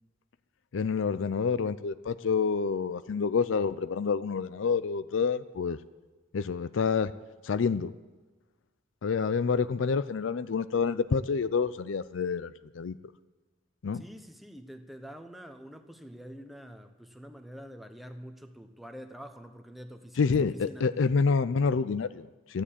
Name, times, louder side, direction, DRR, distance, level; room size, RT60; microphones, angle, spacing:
voice 1, 0.7-5.8 6.3-7.1 7.4-7.9 9.0-13.0 13.8-14.0 20.2-22.6, left 5 dB, 80° left, 13 dB, 0.5 m, -28 dB
voice 2, 13.9-20.9, equal, ahead, 7 dB, 0.9 m, -46 dB
13.5 x 10.0 x 8.4 m, 1.3 s
head